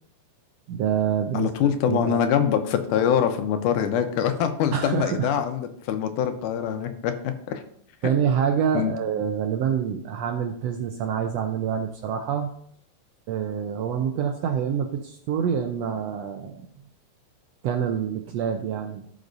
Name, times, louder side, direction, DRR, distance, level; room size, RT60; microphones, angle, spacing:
voice 1, 0.7-1.5 1.9-2.2 4.7-5.3 8.0-12.5 13.3-16.7 17.6-19.0, right 8 dB, 80° right, 5 dB, 1.5 m, -26 dB
voice 2, 1.3-7.6 8.7-8.9, left 8 dB, 85° left, 8 dB, 2.3 m, -24 dB
15.5 x 5.3 x 2.6 m, 0.67 s
omnidirectional pair, 3.5 m